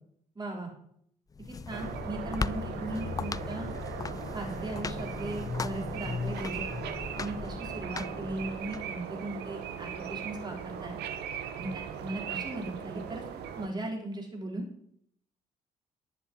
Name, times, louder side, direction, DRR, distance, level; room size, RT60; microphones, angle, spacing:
voice 1, 0.4-0.7 1.5-3.7 4.3-6.6 7.2-11.0 11.5-13.2 13.6-14.7, right 2 dB, 20° right, 0 dB, 3.9 m, -38 dB
sound 1, 1.3-8.8, left 5 dB, 20° left, 0.4 m, -37 dB
sound 2, 1.7-13.7, right 8 dB, 60° right, 1.4 m, -39 dB
11.0 x 7.4 x 9.3 m, 0.69 s
figure-of-eight pair, 45°, 19 cm